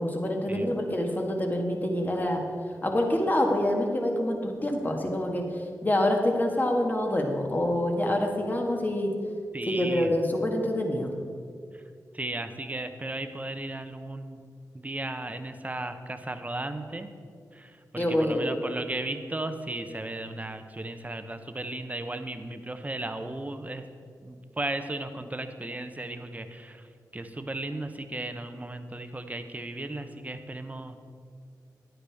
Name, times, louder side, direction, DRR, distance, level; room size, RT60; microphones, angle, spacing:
voice 1, 0.0-2.4 2.8-9.1 9.7-11.1 18.0-18.6, left 1 dB, 25° left, 2 dB, 1.6 m, -26 dB
voice 2, 9.5-10.1 12.1-14.4 14.7-17.1 17.5-23.8 24.2-26.9 27.1-31.0, right 2 dB, 20° right, 8 dB, 0.8 m, -35 dB
10.5 x 9.5 x 3.5 m, 2.2 s
cardioid pair, 55°, 7 cm